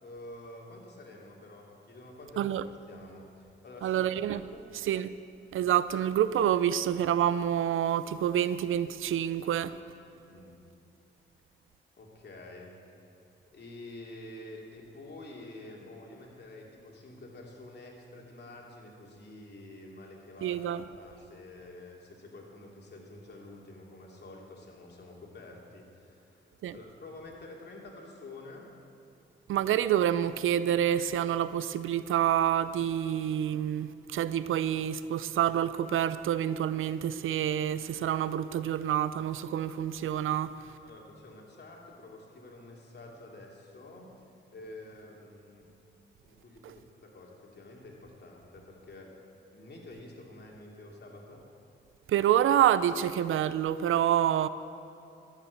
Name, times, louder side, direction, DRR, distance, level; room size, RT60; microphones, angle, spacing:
voice 1, 0.0-2.6 2.9-4.7 10.3-10.6 12.0-12.8 13.5-26.4 26.7-28.7 40.8-45.7 46.2-49.2 49.5-51.5, left 2 dB, 55° left, 2.8 m, -48 dB
voice 2, 3.8-4.4 4.9-5.2 5.5-9.8 20.4-20.8 26.6-26.7 29.5-40.5 52.1-54.5, right 10 dB, 80° right, 0.5 m, -27 dB
13.5 x 7.3 x 8.2 m
cardioid pair, 60°, 21 cm